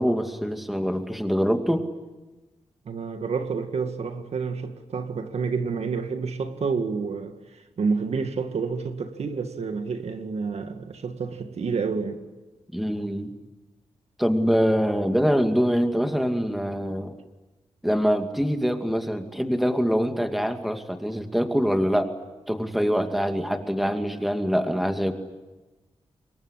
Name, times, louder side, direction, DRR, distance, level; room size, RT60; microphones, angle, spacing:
voice 1, 0.0-1.9 12.7-13.3 14.2-17.1 17.8-22.1 22.5-25.1, equal, ahead, 2.4 m, -24 dB
voice 2, 2.9-7.3 7.8-12.2, right 5 dB, 75° right, 2.1 m, -29 dB
26.0 x 22.0 x 10.0 m
wide cardioid pair, 100°, 11 cm